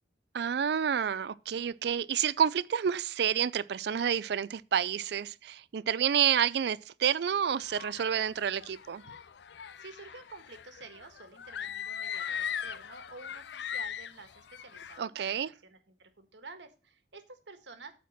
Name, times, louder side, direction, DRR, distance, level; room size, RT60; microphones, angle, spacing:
voice 1, 0.3-9.0 15.0-15.5, right 8 dB, 65° right, 0.4 m, -29 dB
sound 1, 7.5-15.0, left 8 dB, 70° left, 0.4 m, -40 dB
voice 2, 9.5-17.9, right 3 dB, 85° right, 1.5 m, -50 dB
8.4 x 4.3 x 7.1 m
head